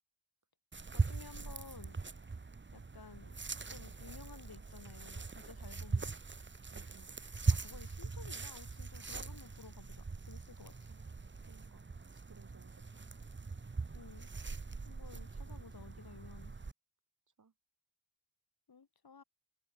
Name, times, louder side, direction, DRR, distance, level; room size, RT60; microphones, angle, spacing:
sound 1, 0.7-16.7, right 4 dB, 25° right, 1.4 m, -41 dB
voice 1, 0.9-2.0 2.7-3.4 3.7-6.1 7.5-10.8 13.9-14.3 14.8-16.6 18.7-19.2, left 5 dB, 55° left, 7.0 m, -55 dB
voice 2, 6.7-7.2 10.9-11.1 11.5-11.9 12.3-13.0 17.4-17.5, right 5 dB, 45° right, 3.4 m, -62 dB
cardioid pair, 75°, 43 cm